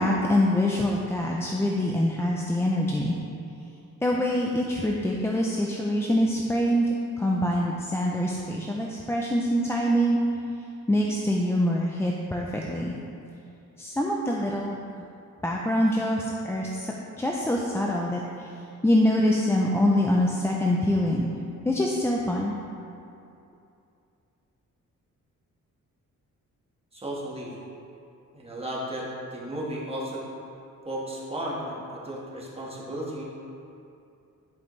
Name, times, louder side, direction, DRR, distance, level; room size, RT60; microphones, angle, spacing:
voice 1, 0.0-3.2 4.0-6.9 7.2-10.2 10.9-13.0 13.8-14.8 15.4-18.5 18.8-21.3 21.7-22.5, left 1 dB, 10° left, -2 dB, 0.4 m, -25 dB
voice 2, 26.9-27.5 28.3-30.2 30.8-33.2, right 1 dB, 20° right, -5 dB, 1.4 m, -34 dB
10.5 x 5.3 x 3.1 m, 2.6 s
wide cardioid pair, 140°, 32 cm